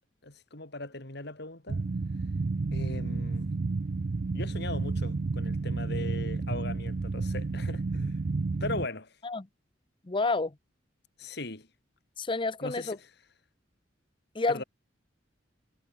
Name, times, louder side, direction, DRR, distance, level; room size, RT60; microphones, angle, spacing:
voice 1, 0.2-1.8 2.7-3.5 4.3-8.2 8.6-9.1 11.2-11.7 12.6-13.0 14.5-14.6, left 2 dB, 55° left, 3.4 m, -38 dB
sound 1, 1.7-8.9, right 3 dB, 45° right, 0.5 m, -31 dB
voice 2, 10.0-10.5 12.2-13.0 14.3-14.6, left 3 dB, 25° left, 0.7 m, -29 dB
head